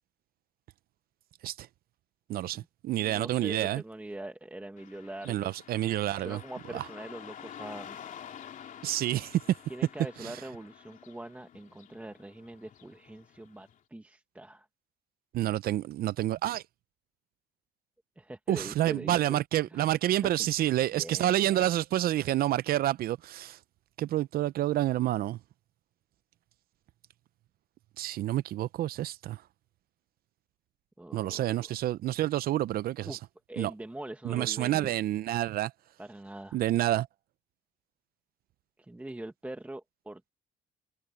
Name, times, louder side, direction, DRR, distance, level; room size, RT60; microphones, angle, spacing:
voice 1, 2.3-3.8 5.3-6.4 6.7-6.8 8.8-9.4 10.2-10.4 15.3-16.6 18.5-23.6 24.0-25.4 28.0-29.4 31.1-33.2 33.6-33.7 34.2-35.7 36.5-37.1, right 13 dB, 60° right, 0.6 m, -28 dB
voice 2, 2.9-5.5 6.1-8.1 9.7-14.7 18.2-21.7 31.0-31.5 33.0-33.2 33.5-34.9 36.0-36.6 38.8-40.3, right 1 dB, 10° right, 1.6 m, -43 dB
Car passing by / Traffic noise roadway noise, 4.8-13.8, left 9 dB, 50° left, 3.1 m, -49 dB
cardioid pair, 110°, 17 cm